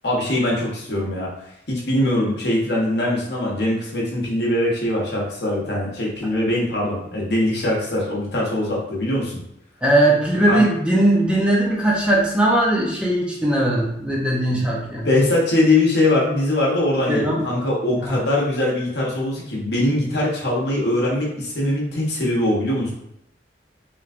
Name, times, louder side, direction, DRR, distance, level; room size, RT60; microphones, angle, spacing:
voice 1, 0.0-1.3 1.7-9.4 10.5-10.6 14.4-14.7 15.0-22.9, left 1 dB, 65° left, -4 dB, 1.0 m, -22 dB
voice 2, 9.8-15.1 17.1-17.4 18.0-18.2, right 1 dB, 5° right, -5 dB, 0.7 m, -19 dB
3.2 x 3.1 x 2.5 m, 0.78 s
head